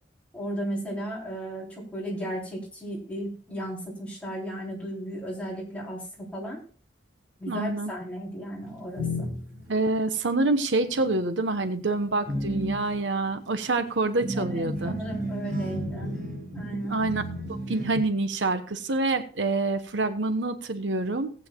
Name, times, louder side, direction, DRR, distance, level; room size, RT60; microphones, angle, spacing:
voice 1, 0.3-6.6 7.4-9.3 14.4-16.2 16.5-17.0, right 1 dB, 5° left, -5 dB, 3.6 m, -35 dB
voice 2, 7.5-7.9 9.7-15.0 16.9-17.2 17.7-21.3, right 2 dB, 85° right, 9 dB, 1.0 m, -26 dB
sound 1, 8.6-9.8 10.8-11.2 11.6-18.0, equal, 40° right, 6.4 m, -33 dB
18.0 x 8.7 x 2.3 m, 0.40 s
head